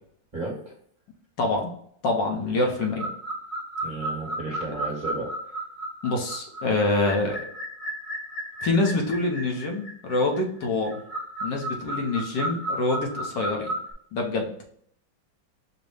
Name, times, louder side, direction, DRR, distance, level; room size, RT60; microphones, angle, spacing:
voice 1, 0.3-0.7 3.8-5.3, right 3 dB, 30° right, -4 dB, 1.1 m, -33 dB
voice 2, 1.4-1.7 2.0-3.1 4.7-4.8 6.0-7.5 8.6-11.0 11.4-13.7 14.1-14.5, left 2 dB, 75° left, 1 dB, 1.5 m, -26 dB
sound 1, 2.8-13.9, right 1 dB, 25° left, 1.0 m, -34 dB
5.2 x 2.1 x 4.8 m, 0.65 s
omnidirectional pair, 2.0 m